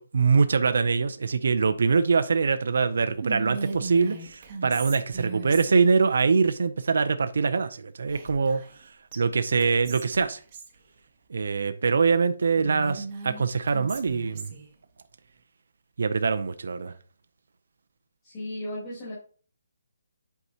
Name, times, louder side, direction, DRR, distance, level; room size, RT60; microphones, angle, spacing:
voice 1, 0.0-8.6 9.2-10.4 11.3-14.5 16.0-16.9, right 5 dB, 60° right, 10 dB, 0.5 m, -23 dB
Whispering, 3.2-6.0 8.1-8.8 9.1-9.2 9.6-10.7 12.6-14.7, right 3 dB, 25° right, 0.9 m, -38 dB
voice 2, 18.2-19.1, left 1 dB, 15° left, -11 dB, 2.7 m, -35 dB
8.1 x 4.6 x 2.8 m, 0.40 s
hypercardioid pair, 175°, 0 cm